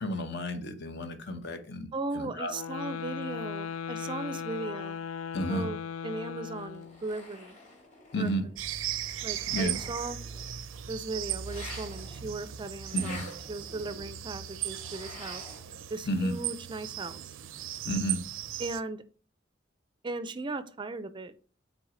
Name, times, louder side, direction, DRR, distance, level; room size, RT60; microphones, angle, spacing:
voice 1, 0.0-1.9 2.1-2.5 5.3-5.7 8.1-8.5 9.5-9.8 12.9-13.2 16.1-16.3 17.8-18.2, equal, 60° left, 8 dB, 1.0 m, -31 dB
voice 2, 1.9-5.0 5.5-5.8 6.0-7.6 8.2-8.3 9.2-10.2 10.9-15.5 15.9-17.3 18.6-19.0 20.0-21.3, right 3 dB, 25° right, 12 dB, 0.4 m, -37 dB
sound 1, 2.5-7.0, left 7 dB, 90° left, 0.3 m, -37 dB
sound 2, 6.3-15.9 16.2-18.6, left 2 dB, 40° left, 2.9 m, -50 dB
sound 3, 8.6-18.8, right 11 dB, 80° right, 0.5 m, -37 dB
6.3 x 4.1 x 4.9 m, 0.41 s
head